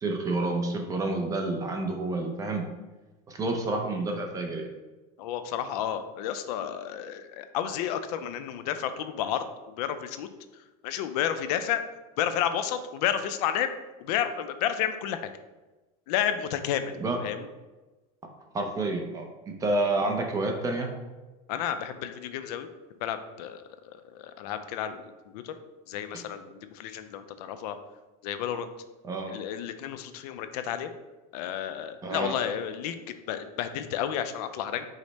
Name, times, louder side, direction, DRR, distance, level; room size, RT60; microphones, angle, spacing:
voice 1, 0.0-2.7 3.3-4.7 17.0-17.2 18.5-20.9 26.1-26.2 29.0-29.4 32.0-32.3, right 2 dB, 15° right, 3 dB, 0.5 m, -29 dB
voice 2, 5.2-9.4 9.8-10.3 10.8-11.8 12.2-13.7 14.0-15.3 16.1-16.9 17.2-17.5 21.5-22.7 23.0-25.1 25.3-25.6 25.9-27.8 28.2-28.7 29.3-30.9 31.3-34.8, left 9 dB, 80° left, 10 dB, 0.4 m, -31 dB
4.9 x 2.1 x 4.0 m, 1.2 s
supercardioid pair, 150°, 20 cm